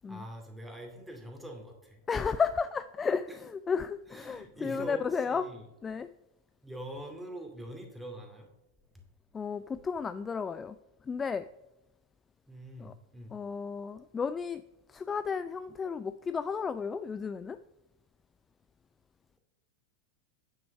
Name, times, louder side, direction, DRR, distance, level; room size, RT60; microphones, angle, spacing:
voice 1, 0.1-2.0 3.3-3.4 4.1-5.7 6.6-8.5 12.5-13.3, right 1 dB, 5° right, 2.4 m, -44 dB
voice 2, 2.1-5.5 5.8-6.1 9.3-10.8 11.1-11.5 12.8-12.9 13.3-14.6 14.9-17.6, left 5 dB, 20° left, 0.3 m, -33 dB
9.4 x 6.0 x 5.3 m
figure-of-eight pair, 90°, 0 cm